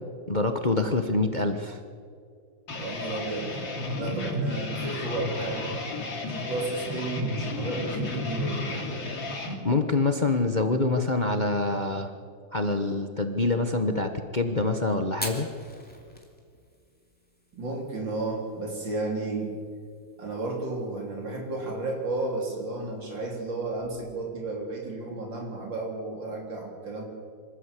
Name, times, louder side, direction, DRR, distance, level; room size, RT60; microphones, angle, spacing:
voice 1, 0.3-1.8 9.6-12.1 12.5-15.5, left 3 dB, 30° left, 6 dB, 1.0 m, -25 dB
sound 1, 2.7-9.6, left 2 dB, 80° left, 3.5 m, -32 dB
voice 2, 2.8-3.6 4.0-5.8 6.3-8.9 17.5-19.6 20.2-27.0, right 2 dB, 75° right, 0 dB, 4.4 m, -33 dB
Fire, 15.1-24.3, equal, 5° left, 2.8 m, -46 dB
26.0 x 13.5 x 8.3 m, 2.3 s
omnidirectional pair, 2.1 m